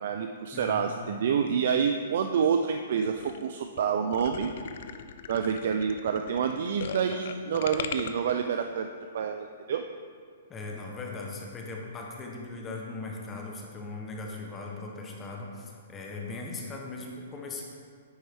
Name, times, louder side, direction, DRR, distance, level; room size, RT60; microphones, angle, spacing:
voice 1, 0.0-4.5 5.3-8.9 9.1-9.8, right 7 dB, 60° right, 6 dB, 0.4 m, -28 dB
voice 2, 0.5-0.9 10.5-17.6, left 3 dB, 15° left, -1 dB, 0.9 m, -39 dB
sound 1, 3.2-3.4 3.8-3.9 4.1-8.3, left 9 dB, 60° left, 0.4 m, -38 dB
9.7 x 4.5 x 3.5 m, 2.1 s
hypercardioid pair, 150°, 0 cm